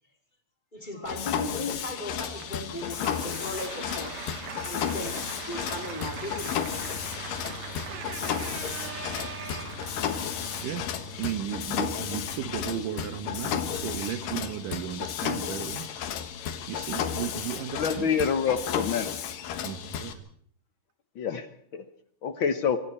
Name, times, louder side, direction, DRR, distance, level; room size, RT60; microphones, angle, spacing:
voice 1, 0.7-4.1 4.6-6.7 7.4-7.6, left 1 dB, 15° left, 2 dB, 3.3 m, -37 dB
Mechanisms, 1.1-20.1, left 8 dB, 85° left, 3.1 m, -33 dB
Applause, 2.2-12.8, right 7 dB, 60° right, 2.5 m, -43 dB
voice 2, 7.9-9.9 10.6-15.9 16.7-18.3 19.6-20.2, right 10 dB, 80° right, 12 dB, 2.7 m, -36 dB
voice 3, 17.7-19.1 21.1-21.5 21.7-21.8 22.2-22.8, left 7 dB, 65° left, 10 dB, 1.3 m, -26 dB
25.5 x 23.5 x 4.4 m, 0.63 s
omnidirectional pair, 3.8 m